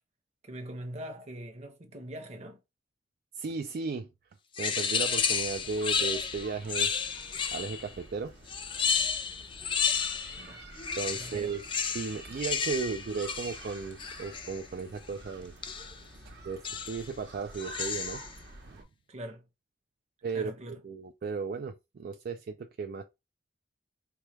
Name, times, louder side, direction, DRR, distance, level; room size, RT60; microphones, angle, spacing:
voice 1, 0.4-2.6 10.4-10.6 11.1-11.5 19.1-19.5 20.3-20.8, right 1 dB, 40° right, 0.9 m, -42 dB
voice 2, 3.4-4.1 4.6-6.9 7.5-8.3 11.0-11.6 11.9-15.5 16.4-18.2 18.6-18.8 20.2-20.5 20.8-23.0, right 4 dB, 60° right, 0.3 m, -35 dB
sound 1, 4.6-7.9 8.5-10.5 10.8-14.6 15.6-16.0 16.6-17.1 17.5-18.3, left 6 dB, 30° left, 0.4 m, -32 dB
sound 2, 4.9-18.8, right 2 dB, 75° right, 1.1 m, -49 dB
4.7 x 2.3 x 3.1 m
head